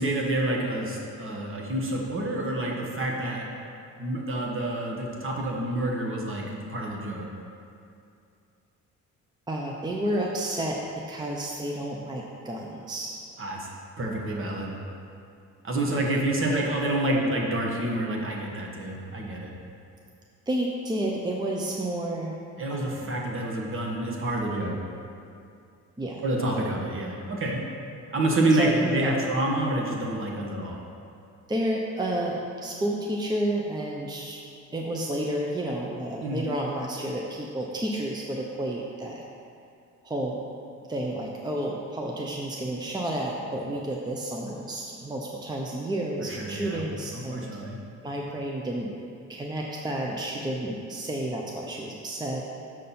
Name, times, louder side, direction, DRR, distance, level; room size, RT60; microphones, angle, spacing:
voice 1, 0.0-3.5 4.0-7.3 13.4-13.7 14.0-14.8 15.6-19.5 22.6-24.8 26.2-27.6 28.1-30.8 36.2-36.4 46.2-46.8 47.1-47.8, right 1 dB, 45° right, -1 dB, 1.3 m, -28 dB
voice 2, 9.5-10.8 11.1-13.2 15.9-16.0 16.5-16.6 20.5-22.4 22.7-23.1 26.0-26.2 28.5-29.2 31.5-34.4 34.7-39.2 40.0-40.4 40.9-47.5 48.0-48.9 49.3-52.4, right 1 dB, 15° right, -1 dB, 0.6 m, -31 dB
6.5 x 5.4 x 4.3 m, 2.5 s
cardioid pair, 90°, 30 cm